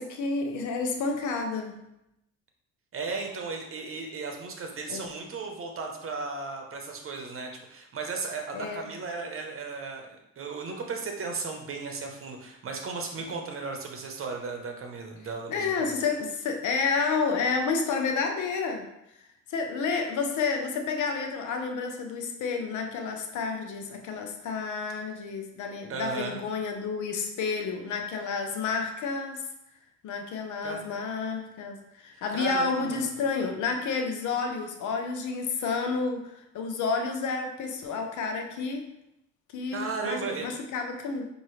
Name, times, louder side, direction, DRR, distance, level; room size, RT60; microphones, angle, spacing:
voice 1, 0.0-1.8 4.9-5.0 8.5-8.9 13.3-13.4 15.5-18.9 19.5-29.5 30.0-38.9 39.5-41.3, left 4 dB, 75° left, 4 dB, 0.7 m, -30 dB
voice 2, 2.9-16.0 25.9-26.4 30.6-30.8 32.3-33.1 39.7-40.5, right 4 dB, 45° right, 3 dB, 0.9 m, -35 dB
5.5 x 2.7 x 3.2 m, 0.84 s
cardioid pair, 90°, 30 cm